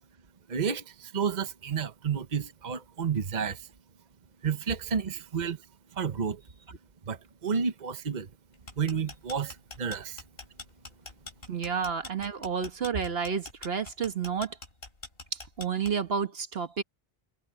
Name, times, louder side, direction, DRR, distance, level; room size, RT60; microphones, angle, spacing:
voice 1, 0.5-3.7 4.4-5.6 5.9-6.4 7.1-8.3 8.8-10.2, right 6 dB, 45° right, 1.1 m, -31 dB
sound 1, 8.5-16.2, left 3 dB, 65° left, 3.2 m, -44 dB
voice 2, 11.5-14.6 15.3-16.8, right 6 dB, 70° right, 1.5 m, -30 dB
omnidirectional pair, 1.1 m